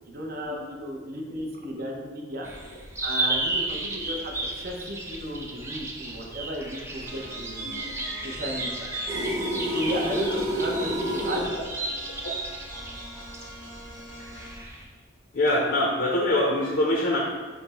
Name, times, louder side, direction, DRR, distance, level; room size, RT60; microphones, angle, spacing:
voice 1, 0.1-2.5 3.0-7.7 8.2-8.9 9.7-11.5, equal, 55° right, 0 dB, 0.7 m, -34 dB
sound 1, 2.4-14.8, right 2 dB, 15° right, 0.5 m, -33 dB
sound 2, 7.1-14.7, right 1 dB, 80° right, 1.2 m, -44 dB
sound 3, 9.1-11.5, equal, 35° right, 1.2 m, -29 dB
voice 2, 15.3-17.2, left 1 dB, 60° left, -3 dB, 0.6 m, -24 dB
5.7 x 2.1 x 4.1 m, 1.4 s
head